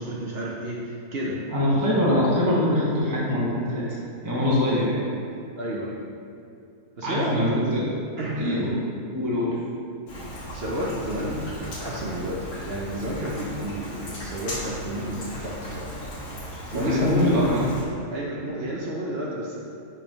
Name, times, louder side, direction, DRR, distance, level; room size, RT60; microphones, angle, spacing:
voice 1, 0.0-1.4 5.6-6.0 7.0-7.6 8.2-8.7 10.5-15.9 16.7-17.6 18.1-19.6, equal, 55° right, -4 dB, 0.7 m, -30 dB
voice 2, 1.5-3.9 4.2-5.0 7.0-7.8 8.4-8.8 9.1-9.6 16.7-17.6, left 1 dB, 15° right, -7 dB, 0.8 m, -23 dB
Rain, 10.1-17.8, equal, 90° left, 1.8 m, -36 dB
5.3 x 3.5 x 5.2 m, 2.5 s
omnidirectional pair, 1.7 m